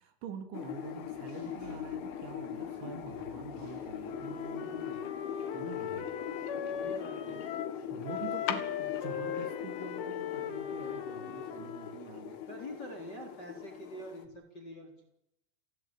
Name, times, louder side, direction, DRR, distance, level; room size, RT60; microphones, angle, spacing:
voice 1, 0.0-5.0 5.5-6.0 7.9-12.4, right 6 dB, 70° right, 7 dB, 5.0 m, -46 dB
sound 1, 0.5-14.3, left 8 dB, 85° left, 4.3 m, -40 dB
Engine / Mechanisms, 0.8-6.8, right 6 dB, 55° right, 4.4 m, -55 dB
Wind instrument woodwind instrument, 4.0-7.8 8.0-12.0, left 10 dB, 65° left, 3.1 m, -39 dB
voice 2, 6.7-7.4 12.5-15.0, equal, 25° left, 3 dB, 3.8 m, -45 dB
30.0 x 19.0 x 8.9 m, 0.81 s
omnidirectional pair, 5.5 m